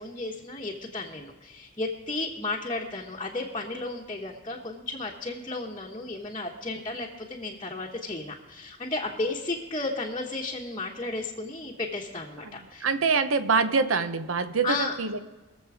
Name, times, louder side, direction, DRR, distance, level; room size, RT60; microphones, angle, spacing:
voice 1, 0.0-12.8 14.6-15.0, left 2 dB, 25° left, -2 dB, 1.0 m, -33 dB
voice 2, 12.8-15.2, right 4 dB, 85° right, 11 dB, 0.7 m, -25 dB
21.5 x 7.3 x 4.9 m, 1.2 s
head